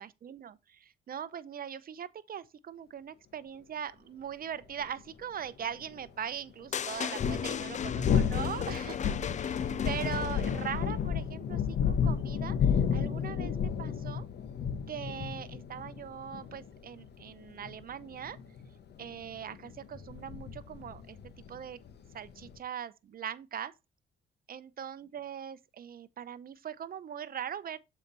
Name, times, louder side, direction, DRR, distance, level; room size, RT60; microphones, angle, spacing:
voice 1, 0.0-9.0 9.2-14.2 14.9-18.4 19.0-21.2 21.5-21.8 22.1-23.7 24.5-27.8, right 8 dB, 45° right, 0.7 m, -41 dB
sound 1, 4.8-4.9 7.0-22.6, left 7 dB, 55° left, 1.1 m, -32 dB
sound 2, 6.7-11.0, left 8 dB, 35° left, 0.4 m, -36 dB
7.1 x 4.6 x 4.0 m
cardioid pair, 90°, 20 cm